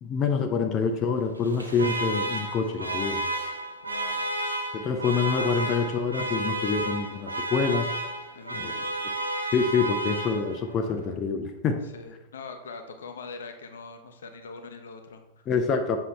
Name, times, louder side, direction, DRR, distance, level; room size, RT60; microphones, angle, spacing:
voice 1, 0.0-3.2 4.7-7.9 8.5-8.8 9.5-11.8 15.5-16.0, left 5 dB, 30° left, 4 dB, 0.6 m, -26 dB
Alarm, 1.4-10.8, right 2 dB, 80° right, 0.7 m, -32 dB
voice 2, 2.7-3.1 3.8-4.2 8.3-8.8 11.8-15.5, left 4 dB, 65° left, 6 dB, 0.8 m, -42 dB
7.4 x 5.6 x 3.4 m, 0.96 s
figure-of-eight pair, 90°, 0 cm